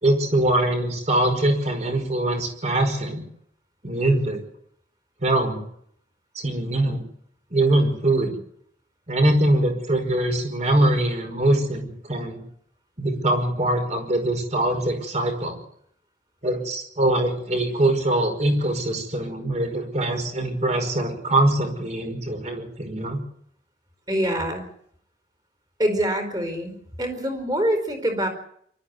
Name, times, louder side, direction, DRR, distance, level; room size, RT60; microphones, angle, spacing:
voice 1, 0.0-3.2 3.8-4.4 5.2-5.6 6.4-7.0 7.5-8.3 9.1-12.4 13.0-15.6 16.4-23.2, right 1 dB, 40° right, 5 dB, 5.3 m, -23 dB
voice 2, 24.1-24.6 25.8-28.3, equal, 20° right, 6 dB, 4.5 m, -25 dB
24.0 x 13.0 x 9.7 m, 0.68 s
head